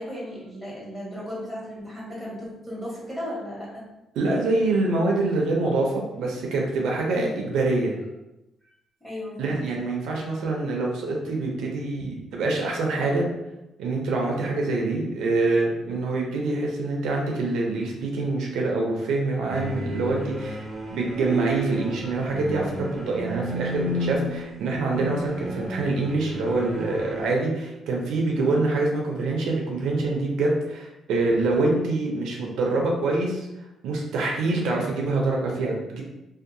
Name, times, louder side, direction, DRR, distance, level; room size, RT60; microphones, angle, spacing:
voice 1, 0.0-3.8 7.1-7.4 9.0-9.6 12.0-12.1 28.5-28.6 31.3-31.4, equal, ahead, -6 dB, 1.3 m, -36 dB
voice 2, 4.2-7.9 9.4-13.2 13.8-33.5 33.8-36.0, right 2 dB, 85° right, 0 dB, 0.5 m, -25 dB
sound 1, 19.5-27.2, equal, 20° right, 0.6 m, -32 dB
2.6 x 2.2 x 2.6 m, 0.94 s
cardioid pair, 90°, 0 cm